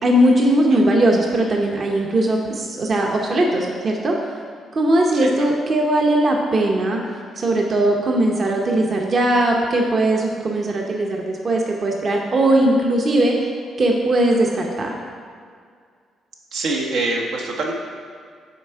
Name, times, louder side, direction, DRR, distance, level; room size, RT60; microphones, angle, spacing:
voice 1, 0.0-4.2 4.7-7.0 7.4-13.5 13.8-15.0, right 1 dB, 45° right, 0 dB, 0.8 m, -19 dB
voice 2, 5.1-5.5 16.5-17.7, right 2 dB, 80° right, -1 dB, 1.0 m, -25 dB
7.0 x 4.3 x 4.6 m, 2.1 s
cardioid pair, 90°, 0 cm